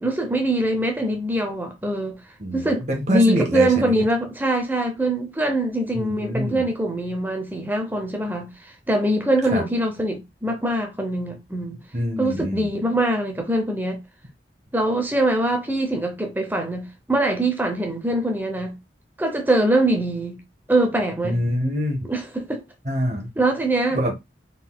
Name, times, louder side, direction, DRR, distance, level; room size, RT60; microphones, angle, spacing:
voice 1, 0.0-2.2 2.5-11.8 12.2-14.0 14.7-18.8 19.2-20.4 20.7-21.4 22.0-22.6 23.4-24.0, right 1 dB, 10° right, 0.5 m, -23 dB
voice 2, 2.4-4.0 5.9-6.7 9.5-9.6 11.9-12.7 21.2-22.1 22.8-23.3 23.9-24.3, equal, 40° right, 0.8 m, -25 dB
3.9 x 3.8 x 2.2 m
head